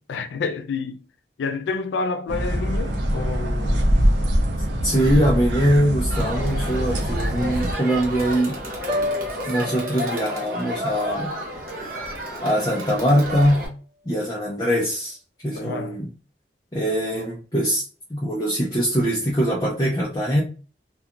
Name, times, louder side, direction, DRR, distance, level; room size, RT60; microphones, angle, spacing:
voice 1, 0.1-1.0 1.4-3.8 8.7-8.8 15.6-16.0, left 4 dB, 80° left, 0.3 m, -29 dB
sound 1, 2.3-7.7, equal, 75° right, 0.7 m, -23 dB
voice 2, 4.8-8.6 9.5-11.3 12.4-13.7 14.1-15.2 15.4-16.1 16.7-17.8 18.1-20.4, equal, 20° left, 0.5 m, -22 dB
Crowd, 6.1-13.7, equal, 50° right, 0.9 m, -31 dB
Piano, 8.9-12.8 13.2-13.6, left 2 dB, 30° right, 0.5 m, -33 dB
2.4 x 2.3 x 2.8 m
head